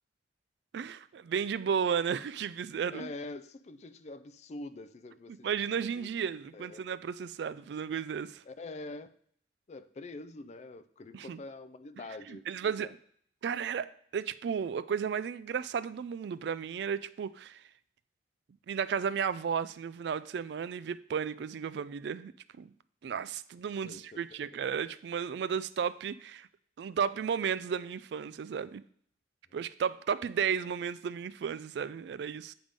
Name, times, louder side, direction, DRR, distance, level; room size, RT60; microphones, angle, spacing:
voice 1, 0.7-3.1 5.4-8.4 11.1-11.4 12.3-12.9 13.4-17.6 18.7-22.3 22.6-22.7 23.0-26.5 26.8-28.8 29.5-32.5, right 7 dB, 65° right, 15 dB, 0.3 m, -33 dB
voice 2, 2.9-5.6 6.0-6.1 6.5-6.8 8.4-9.1 9.7-12.9 23.8-24.7, left 2 dB, 35° left, 13 dB, 0.3 m, -45 dB
8.8 x 3.5 x 5.2 m, 0.62 s
head